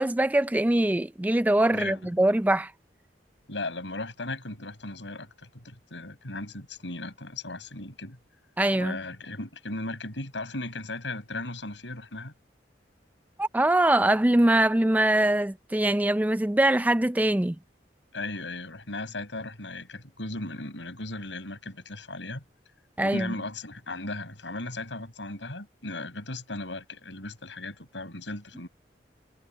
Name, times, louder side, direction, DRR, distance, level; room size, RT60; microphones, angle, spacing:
voice 1, 0.0-2.7 8.6-9.0 13.4-17.6 23.0-23.3, right 1 dB, 10° right, 0.4 m, -23 dB
voice 2, 3.5-8.2 8.7-12.3 18.1-22.4 23.0-28.7, left 2 dB, 85° left, 6.0 m, -37 dB
head